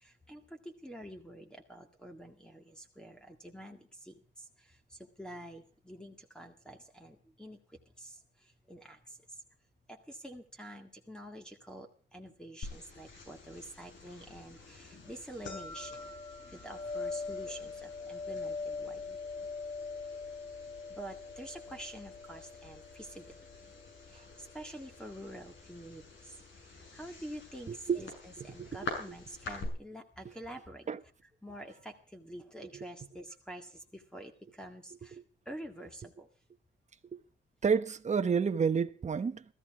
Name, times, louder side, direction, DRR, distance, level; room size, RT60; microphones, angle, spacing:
voice 1, 0.0-4.1 5.2-7.6 8.0-8.1 8.7-9.0 9.9-16.0 16.4-19.2 20.9-23.2 24.1-26.3 26.9-30.8 31.4-35.2 35.5-36.3, right 1 dB, 5° left, 1.9 m, -47 dB
sound 1, 12.6-29.7, left 3 dB, 65° left, 7.1 m, -43 dB
voice 2, 27.7-28.0 28.4-28.7 30.9-31.0 32.7-32.8 37.1-37.2 37.6-39.4, right 6 dB, 35° right, 1.1 m, -30 dB
17.5 x 14.5 x 4.8 m
wide cardioid pair, 140°, 21 cm